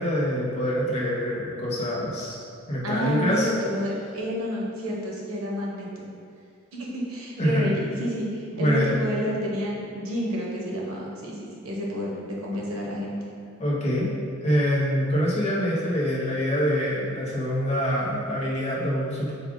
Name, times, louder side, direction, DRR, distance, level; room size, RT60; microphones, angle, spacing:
voice 1, 0.0-2.4 2.7-3.5 7.4-7.7 8.5-8.9 13.6-14.1 14.4-19.3, equal, 30° left, -5 dB, 0.8 m, -25 dB
voice 2, 2.8-6.1 6.7-13.2, equal, 85° right, -3 dB, 0.8 m, -30 dB
4.7 x 2.4 x 3.6 m, 2.2 s
head